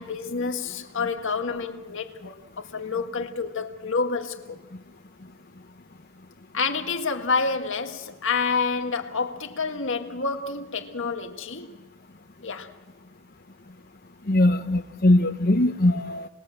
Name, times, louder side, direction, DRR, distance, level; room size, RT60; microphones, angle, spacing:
voice 1, 0.0-4.6 6.5-11.7 12.4-12.7, left 4 dB, 65° left, 1.9 m, -28 dB
voice 2, 14.3-16.3, left 1 dB, 45° left, 1.0 m, -20 dB
28.5 x 20.5 x 7.8 m
head